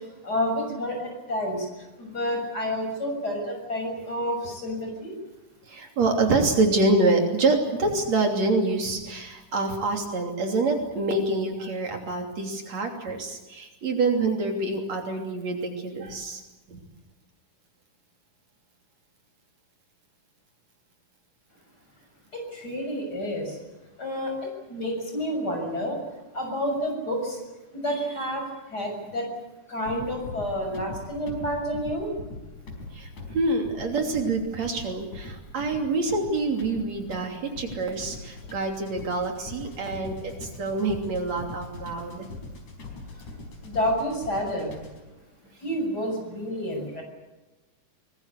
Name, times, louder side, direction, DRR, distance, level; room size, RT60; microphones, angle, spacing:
voice 1, 0.2-1.7 2.0-5.1 22.3-23.5 24.0-24.3 24.7-26.0 26.3-27.4 27.7-28.4 28.7-29.3 29.7-32.1 43.6-44.7 45.6-47.0, equal, 30° left, 3 dB, 7.3 m, -29 dB
voice 2, 5.7-16.4 16.7-16.8 32.9-33.1 33.3-42.3, right 3 dB, 60° right, 3 dB, 4.2 m, -26 dB
sound 1, 29.8-45.1, left 2 dB, 75° left, 6.1 m, -41 dB
24.0 x 21.0 x 8.4 m, 1.1 s
omnidirectional pair, 3.4 m